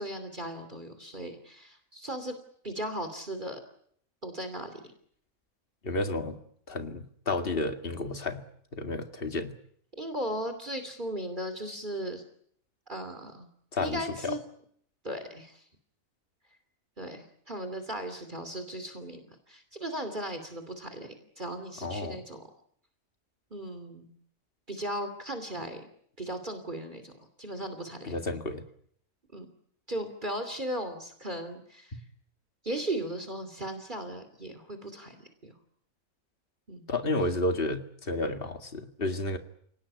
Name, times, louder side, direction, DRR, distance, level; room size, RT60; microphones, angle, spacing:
voice 1, 0.0-2.4 2.6-3.6 4.2-4.8 6.2-6.3 10.0-12.2 12.9-13.5 13.8-14.4 15.0-15.6 17.0-22.4 23.5-24.1 24.7-25.9 26.2-27.1 27.4-28.1 29.3-29.5 29.9-32.0 32.6-35.5 36.7-36.9, right 1 dB, 35° right, 8 dB, 3.0 m, -37 dB
voice 2, 5.8-6.4 6.7-8.4 8.7-9.6 13.7-14.4 21.8-22.2 28.0-28.6 31.9-32.0 36.9-39.4, left 2 dB, 40° left, 7 dB, 2.3 m, -31 dB
29.0 x 18.5 x 9.9 m, 0.67 s
omnidirectional pair, 1.5 m